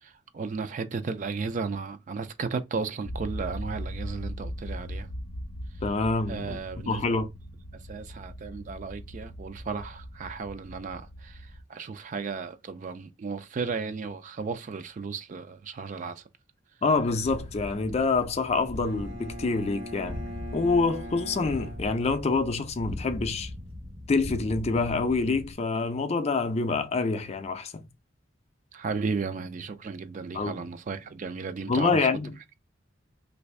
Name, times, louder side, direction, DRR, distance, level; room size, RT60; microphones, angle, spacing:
voice 1, 0.0-5.1 6.3-7.1 7.9-16.2 28.7-32.1, right 4 dB, 40° right, 0.3 m, -34 dB
sound 1, 3.0-11.6, equal, 80° left, 0.6 m, -39 dB
voice 2, 5.8-7.3 16.8-20.2 20.5-23.5 24.1-27.8 30.3-30.6 31.7-32.5, left 3 dB, 35° left, 0.4 m, -26 dB
sound 2, 17.2-25.5, left 1 dB, 55° right, 1.0 m, -40 dB
Bowed string instrument, 18.8-22.7, equal, 75° right, 1.2 m, -42 dB
3.2 x 2.6 x 3.1 m
head